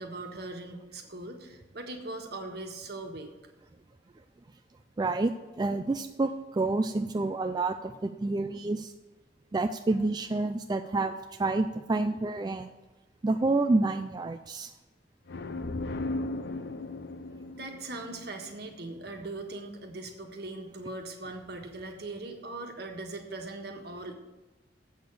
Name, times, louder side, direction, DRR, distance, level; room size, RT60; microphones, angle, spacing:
voice 1, 0.0-3.3 17.6-24.1, right 2 dB, 65° right, 3 dB, 1.4 m, -40 dB
voice 2, 5.0-8.9 9.5-11.1 11.4-12.7 13.2-14.7, right 2 dB, 25° right, 7 dB, 0.3 m, -28 dB
sound 1, 15.3-18.9, left 2 dB, 65° left, 0.5 m, -36 dB
8.0 x 6.8 x 6.5 m, 1.1 s
head